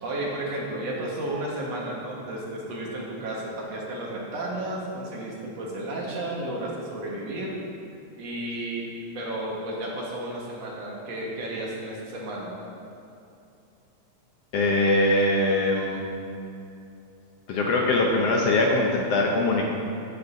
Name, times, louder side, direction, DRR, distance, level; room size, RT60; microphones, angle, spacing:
voice 1, 0.0-7.5 8.2-12.6, right 1 dB, 65° right, -4 dB, 2.5 m, -33 dB
voice 2, 14.5-16.0 17.5-19.7, left 2 dB, 70° left, -1 dB, 1.7 m, -22 dB
16.0 x 7.8 x 2.7 m, 2.6 s
omnidirectional pair, 3.4 m